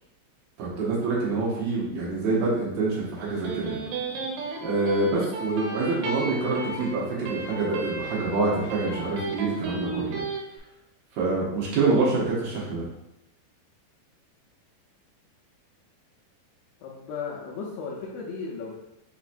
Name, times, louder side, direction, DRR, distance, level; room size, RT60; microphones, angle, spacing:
voice 1, 0.6-3.8 4.6-10.2 11.1-12.9, right 3 dB, 70° right, -5 dB, 2.4 m, -26 dB
Electric guitar, 3.0-10.4, right 4 dB, 85° right, 3.1 m, -34 dB
voice 2, 16.8-18.8, left 5 dB, 85° left, -2 dB, 2.4 m, -35 dB
6.6 x 2.9 x 2.5 m, 0.87 s
omnidirectional pair, 5.2 m